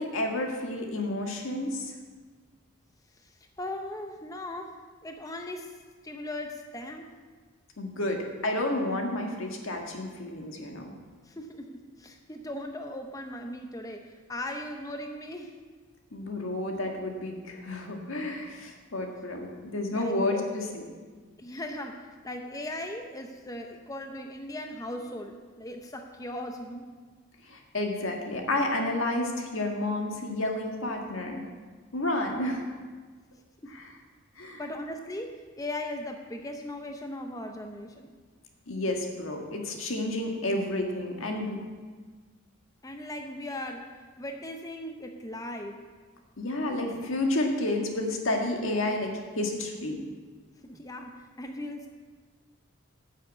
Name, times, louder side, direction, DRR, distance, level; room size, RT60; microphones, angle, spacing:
voice 1, 0.0-1.9 7.8-10.9 16.1-20.8 27.5-31.4 31.9-32.6 33.7-33.9 34.4-34.6 38.7-41.6 46.4-50.0, left 1 dB, 80° left, 2 dB, 1.7 m, -30 dB
voice 2, 3.1-5.8 6.0-7.1 11.2-15.6 19.9-20.5 20.9-21.0 21.4-26.9 32.5-32.8 33.6-33.8 34.6-38.2 42.8-45.9 50.6-51.9, left 1 dB, 15° left, 4 dB, 0.6 m, -38 dB
9.5 x 6.5 x 8.1 m, 1.4 s
head